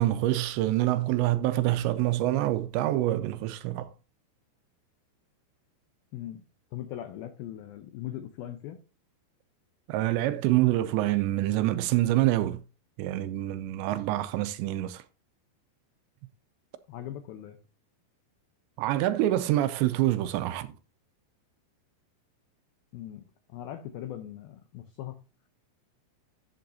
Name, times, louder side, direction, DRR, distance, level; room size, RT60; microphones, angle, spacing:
voice 1, 0.0-3.9 9.9-12.6 13.0-15.0 18.8-20.7, right 15 dB, 85° right, 2.7 m, -26 dB
voice 2, 6.7-8.8 16.9-17.6 22.9-23.2 23.5-25.2, left 12 dB, 80° left, 2.2 m, -40 dB
12.0 x 7.6 x 2.7 m
omnidirectional pair, 5.2 m